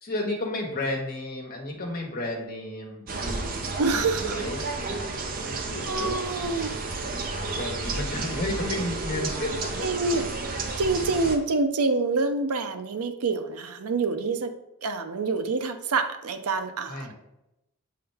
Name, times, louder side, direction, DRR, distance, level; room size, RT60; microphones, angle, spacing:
voice 1, 0.0-4.6 5.4-6.2 7.1-9.7 16.9-17.1, left 1 dB, 45° left, 0 dB, 1.4 m, -33 dB
sound 1, 3.1-11.4, right 3 dB, 40° right, 0.7 m, -32 dB
voice 2, 3.8-4.7 5.8-6.7 9.8-10.2 10.8-14.5 14.8-17.1, right 3 dB, 80° right, 8 dB, 0.6 m, -27 dB
7.7 x 3.8 x 3.4 m, 0.90 s
head